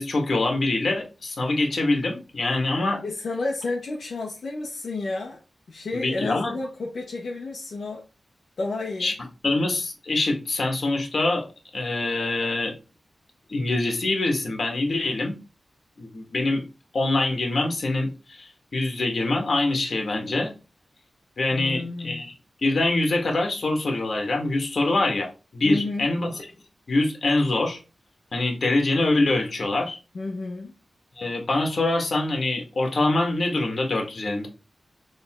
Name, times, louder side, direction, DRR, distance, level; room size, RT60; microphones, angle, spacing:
voice 1, 0.0-3.0 5.9-6.5 9.0-9.1 9.4-11.5 11.7-12.7 13.5-15.4 16.0-16.6 16.9-20.5 21.4-22.3 22.6-26.4 26.9-27.8 28.3-30.0 31.2-34.5, left 2 dB, 55° left, 1.9 m, -24 dB
voice 2, 3.0-5.4 5.7-8.0 8.6-9.1 21.5-22.2 25.6-26.1 30.1-30.7, left 3 dB, 70° left, 1.2 m, -31 dB
6.8 x 3.7 x 3.8 m
wide cardioid pair, 135°, 0 cm